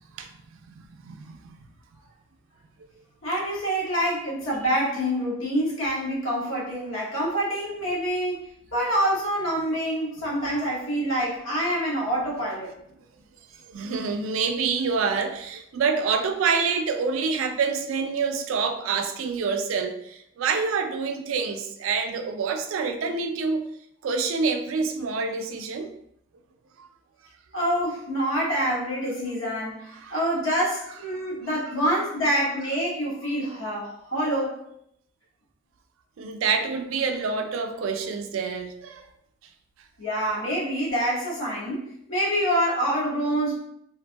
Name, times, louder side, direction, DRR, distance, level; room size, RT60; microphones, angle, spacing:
voice 1, 0.7-1.6 9.7-9.8 10.2-10.3 13.7-23.6 24.0-25.9 26.8-26.9 29.9-30.2 31.5-31.8 36.2-39.0, right 5 dB, 85° right, 0.3 m, -27 dB
voice 2, 3.2-8.4 8.7-12.7 27.5-29.8 30.1-34.6 40.0-43.6, equal, 85° left, 1.1 m, -26 dB
3.2 x 2.6 x 2.2 m
head